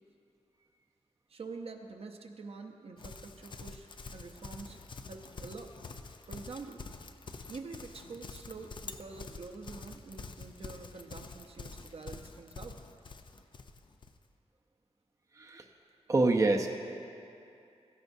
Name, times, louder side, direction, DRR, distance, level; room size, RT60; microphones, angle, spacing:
voice 1, 1.3-4.8 5.0-5.8 6.3-6.9 7.5-12.8, right 4 dB, 60° right, 3 dB, 0.8 m, -46 dB
Livestock farm animals working animals, 3.0-14.2, left 4 dB, 45° left, 0.5 m, -47 dB
voice 2, 16.1-16.7, right 2 dB, 30° right, 3 dB, 0.6 m, -26 dB
17.0 x 15.0 x 2.7 m, 2.6 s
wide cardioid pair, 160°, 11 cm